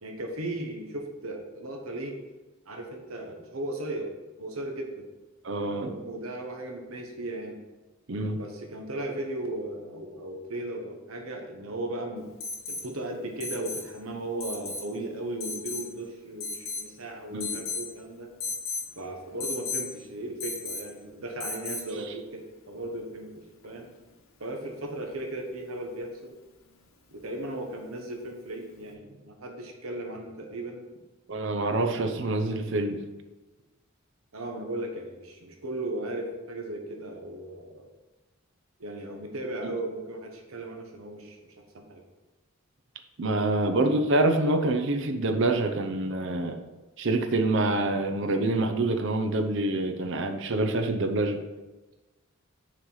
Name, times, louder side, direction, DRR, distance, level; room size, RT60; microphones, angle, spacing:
voice 1, 0.0-2.1 2.7-4.1 4.4-5.1 5.8-7.6 8.3-12.3 12.7-18.3 18.9-24.0 24.4-26.4 27.1-30.8 34.3-37.9 38.8-42.0, right 1 dB, 85° right, 2 dB, 1.3 m, -36 dB
voice 2, 5.4-6.0 8.1-8.4 17.3-17.6 31.3-33.0 43.2-46.6 47.0-51.4, right 2 dB, 60° right, 6 dB, 0.7 m, -26 dB
Alarm, 12.4-12.9 13.4-13.9 14.4-14.9 15.4-15.9 16.4-16.9 17.4-17.9 18.4-18.9 19.4-19.9 20.4-20.9 21.4-21.9 23.6-23.7, left 4 dB, 70° left, 1.3 m, -34 dB
6.5 x 4.8 x 5.6 m, 1.1 s
head